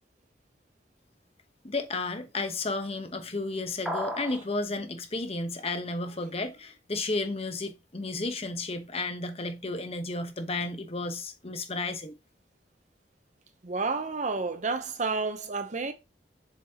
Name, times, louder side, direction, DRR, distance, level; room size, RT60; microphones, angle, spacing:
voice 1, 1.6-12.1, left 2 dB, 35° left, 1.0 m, -33 dB
sound 1, 3.9-4.4, equal, ahead, 1.9 m, -33 dB
voice 2, 13.6-15.9, right 4 dB, 40° right, 0.8 m, -30 dB
7.2 x 6.1 x 2.9 m
head